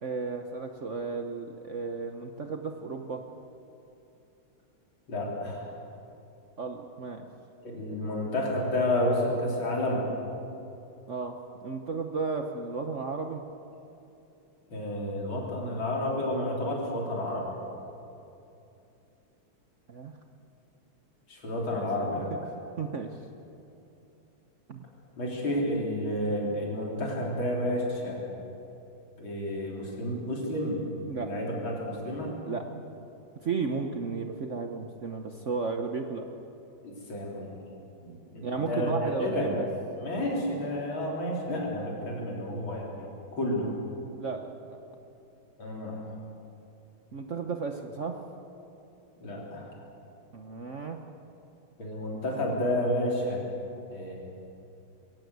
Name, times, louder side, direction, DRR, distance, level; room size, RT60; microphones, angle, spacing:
voice 1, 0.0-3.2 6.6-7.3 11.1-11.4 11.6-13.4 19.9-20.1 22.3-23.1 24.7-24.8 31.1-31.3 32.2-32.7 33.4-36.3 38.4-39.7 44.2-44.8 47.1-48.2 50.3-51.0, right 4 dB, 50° right, 5 dB, 1.0 m, -34 dB
voice 2, 5.1-5.8 7.6-10.0 14.7-17.5 21.3-22.3 25.2-28.2 29.2-30.8 31.2-32.3 36.8-37.5 38.0-39.5 40.0-43.1 43.3-43.7 45.6-46.0 49.2-49.7 51.8-53.4 53.9-54.2, left 1 dB, 75° left, -2 dB, 4.6 m, -30 dB
22.0 x 17.0 x 8.1 m, 2.8 s
omnidirectional pair, 2.2 m